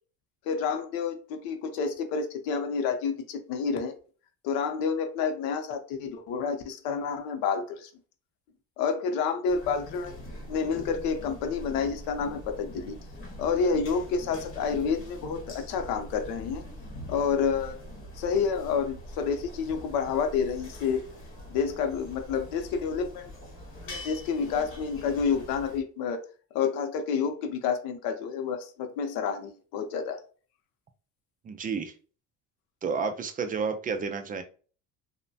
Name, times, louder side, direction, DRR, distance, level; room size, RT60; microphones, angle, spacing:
voice 1, 0.5-3.9 4.4-7.9 8.8-10.1 10.5-13.0 13.4-16.6 17.1-17.8 18.2-21.1 21.5-23.3 23.9-26.2 26.5-30.2, left 6 dB, 90° left, 6 dB, 0.6 m, -29 dB
sound 1, 9.5-25.8, left 1 dB, 40° left, 1.1 m, -43 dB
voice 2, 31.4-31.9 32.8-34.4, right 5 dB, 25° right, 7 dB, 0.3 m, -31 dB
3.0 x 2.1 x 2.6 m, 0.39 s
cardioid pair, 115°, 35 cm